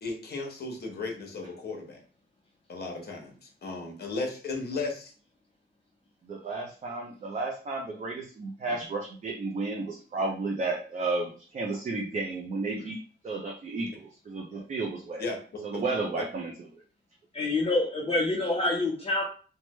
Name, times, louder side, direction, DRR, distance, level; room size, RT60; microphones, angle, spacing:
voice 1, 0.0-2.0 2.7-5.1 15.2-15.6, left 3 dB, 55° left, 2 dB, 0.9 m, -35 dB
voice 2, 6.2-13.0 13.2-15.2 15.6-16.5, right 3 dB, 35° right, 0 dB, 0.5 m, -32 dB
voice 3, 17.3-19.2, left 2 dB, 30° left, -2 dB, 0.5 m, -27 dB
3.1 x 2.1 x 3.1 m, 0.40 s
wide cardioid pair, 135°, 20 cm